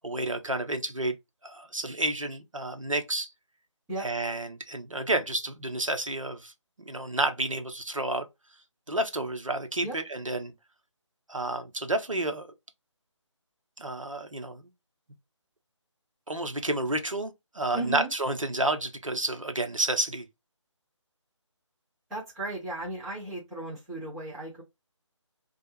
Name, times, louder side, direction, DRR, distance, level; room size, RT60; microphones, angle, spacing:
voice 1, 0.0-1.1 1.4-3.3 4.0-6.5 6.8-8.3 8.9-10.5 11.3-12.5 13.8-14.7 16.3-20.3, right 2 dB, 90° right, 0.8 m, -30 dB
voice 2, 17.7-18.1 22.1-24.6, right 2 dB, ahead, 0.4 m, -35 dB
3.1 x 2.3 x 3.0 m
figure-of-eight pair, 155°, 16 cm